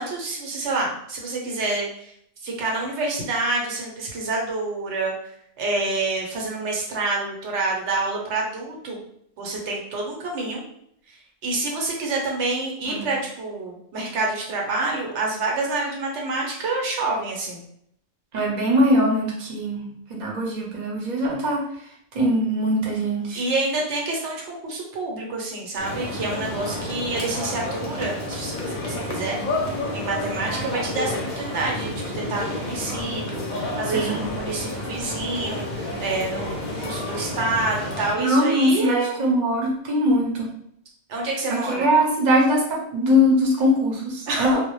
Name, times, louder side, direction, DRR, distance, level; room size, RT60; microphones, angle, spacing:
voice 1, 0.0-2.1 2.4-5.1 5.6-9.0 9.4-10.6 11.4-17.6 23.3-29.4 29.9-39.2 41.1-41.9 44.3-44.5, right 3 dB, 80° right, -1 dB, 0.9 m, -27 dB
voice 2, 18.3-19.8 20.1-21.6 22.1-23.4 33.9-34.2 38.2-40.4 41.5-44.6, equal, 45° right, -3 dB, 0.7 m, -21 dB
sound 1, 25.8-38.1, left 1 dB, 55° left, 0.6 m, -30 dB
2.1 x 2.0 x 2.9 m, 0.71 s
omnidirectional pair, 1.2 m